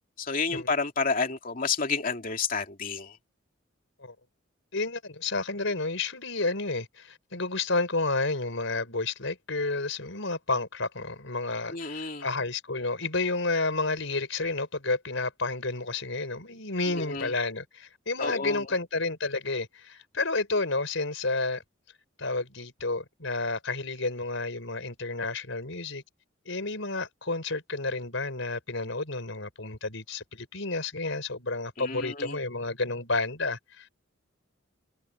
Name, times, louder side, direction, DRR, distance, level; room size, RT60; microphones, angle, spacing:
voice 1, 0.2-3.2 11.7-12.3 16.9-17.3 18.2-18.7 31.8-32.4, left 4 dB, 45° left, 2.7 m, -30 dB
voice 2, 4.7-21.6 22.2-26.0 26.4-33.9, left 3 dB, 70° left, 4.9 m, -31 dB
head